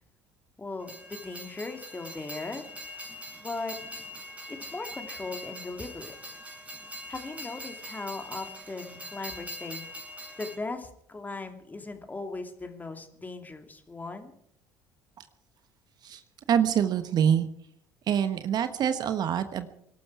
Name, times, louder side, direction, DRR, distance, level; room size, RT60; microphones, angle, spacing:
voice 1, 0.6-2.6 3.4-3.7 4.6-6.2 7.1-14.3, left 3 dB, 20° left, 5 dB, 2.7 m, -38 dB
Train, 0.8-10.6, equal, 15° right, 4.9 m, -42 dB
voice 2, 16.5-17.5 18.1-19.7, right 8 dB, 50° right, 10 dB, 1.3 m, -25 dB
24.0 x 12.5 x 4.8 m, 0.70 s
hypercardioid pair, 60°, 9 cm